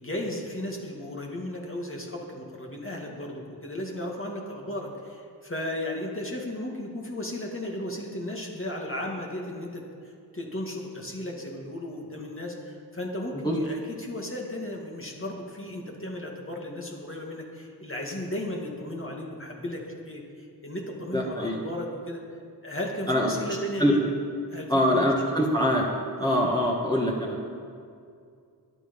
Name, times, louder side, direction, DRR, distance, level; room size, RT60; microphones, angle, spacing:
voice 1, 0.0-22.2 22.6-24.1 24.5-25.1 26.2-26.4, left 1 dB, 30° left, -1 dB, 2.3 m, -35 dB
voice 2, 21.1-21.6 23.1-23.5 23.8-24.0 24.7-25.8 26.2-27.4, equal, 10° left, -3 dB, 1.9 m, -24 dB
22.5 x 9.6 x 5.4 m, 2.3 s
wide cardioid pair, 80°, 40 cm